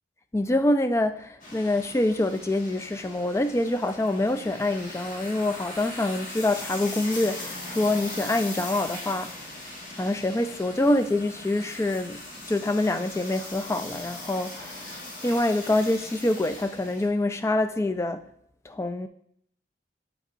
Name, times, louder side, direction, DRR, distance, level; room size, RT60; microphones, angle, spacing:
voice 1, 0.3-9.5 10.0-12.2 12.5-18.3 18.7-19.1, left 1 dB, 15° left, 0.3 m, -26 dB
sound 1, 1.4-17.1, left 2 dB, 45° left, 1.4 m, -40 dB
8.3 x 5.4 x 2.6 m
head